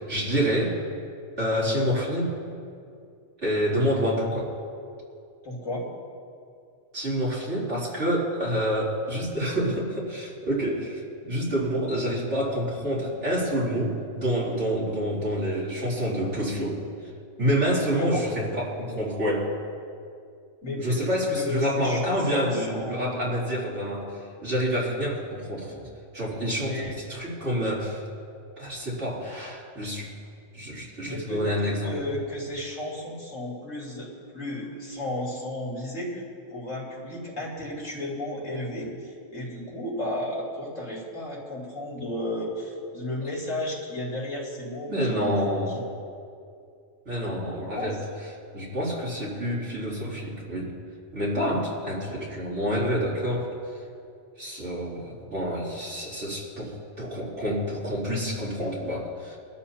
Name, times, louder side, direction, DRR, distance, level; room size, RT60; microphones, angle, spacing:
voice 1, 0.1-0.8 1.4-2.4 3.4-4.5 6.9-16.8 17.4-19.5 20.8-25.9 26.1-28.0 28.6-30.1 30.5-32.0 44.9-45.8 47.1-48.0 48.5-50.8 51.1-53.5 54.4-59.4, equal, 65° right, -7 dB, 3.8 m, -28 dB
voice 2, 5.4-5.9 18.0-18.2 20.6-21.1 21.4-23.1 26.6-26.9 31.0-36.2 36.5-45.3 45.7-45.8 47.7-48.0, left 1 dB, 90° left, -5 dB, 3.8 m, -33 dB
24.0 x 12.5 x 2.9 m, 2.4 s
omnidirectional pair, 1.3 m